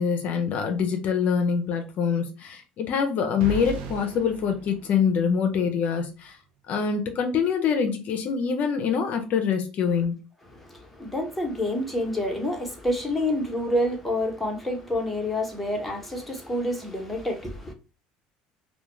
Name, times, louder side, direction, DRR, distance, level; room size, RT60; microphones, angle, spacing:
voice 1, 0.0-6.4 6.7-10.2, left 6 dB, 55° left, 0.5 m, -25 dB
sound 1, 3.4-5.5, right 2 dB, 70° right, 0.6 m, -36 dB
voice 2, 10.5-17.7, left 1 dB, 5° left, 0.9 m, -28 dB
2.3 x 2.1 x 3.0 m
supercardioid pair, 85°, 3 cm